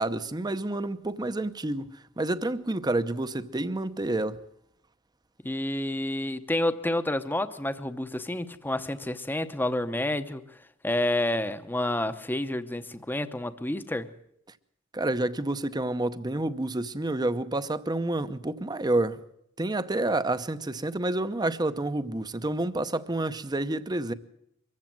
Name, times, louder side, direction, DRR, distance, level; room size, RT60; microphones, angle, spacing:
voice 1, 0.0-1.9 2.2-4.4 14.9-19.2 19.6-24.1, right 2 dB, 20° right, 0.7 m, -29 dB
voice 2, 5.4-10.4 10.8-14.1, left 1 dB, 10° left, 0.8 m, -29 dB
24.0 x 15.0 x 7.6 m
head